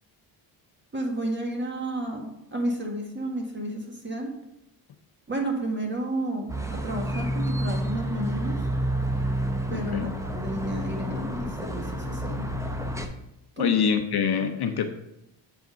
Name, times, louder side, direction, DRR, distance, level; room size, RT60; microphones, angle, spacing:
voice 1, 0.9-4.3 5.3-8.6 9.7-12.5 13.6-13.7, right 1 dB, 20° right, 1 dB, 1.5 m, -31 dB
sound 1, 6.5-13.1, right 1 dB, 5° right, 0.6 m, -29 dB
voice 2, 9.7-10.1 13.6-14.9, left 7 dB, 50° left, 6 dB, 0.7 m, -25 dB
7.9 x 3.5 x 5.0 m, 0.86 s
cardioid pair, 95°, 49 cm